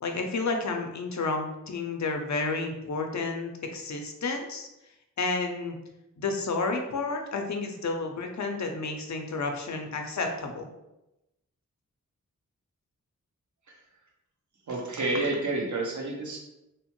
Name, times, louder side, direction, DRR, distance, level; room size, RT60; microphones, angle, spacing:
voice 1, 0.0-4.7 5.2-5.8 6.2-10.7, left 3 dB, 60° left, 4 dB, 0.6 m, -31 dB
voice 2, 14.7-16.4, right 2 dB, 60° right, -1 dB, 0.8 m, -29 dB
2.8 x 2.1 x 2.9 m, 0.92 s
cardioid pair, 50°, 33 cm